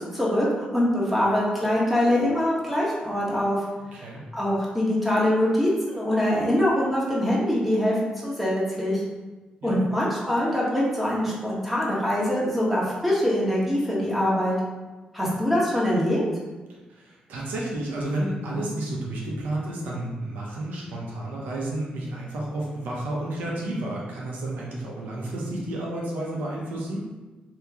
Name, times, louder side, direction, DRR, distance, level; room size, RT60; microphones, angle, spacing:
voice 1, 0.0-3.6 4.0-4.1 4.3-7.9 8.2-9.0 9.6-14.6 15.1-16.2, left 1 dB, ahead, -6 dB, 1.2 m, -23 dB
voice 2, 16.9-27.0, right 1 dB, 90° right, -3 dB, 0.8 m, -31 dB
3.0 x 2.8 x 3.6 m, 1.2 s
cardioid pair, 85°, 3 cm